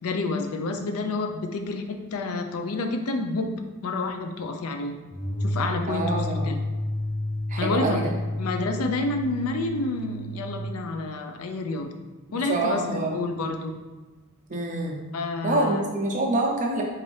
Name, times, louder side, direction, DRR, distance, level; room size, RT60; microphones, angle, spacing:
voice 1, 0.0-3.5 3.8-5.0 5.4-6.6 7.6-8.1 8.4-11.9 12.3-13.7 15.1-15.8, left 3 dB, 70° left, 5 dB, 0.4 m, -29 dB
sound 1, 5.1-10.7, left 1 dB, 25° left, 0.8 m, -31 dB
voice 2, 5.9-6.5 7.5-8.1 12.3-13.2 14.5-15.0 15.4-16.8, right 2 dB, 35° right, 0 dB, 0.6 m, -26 dB
4.0 x 2.6 x 3.1 m, 1.3 s
head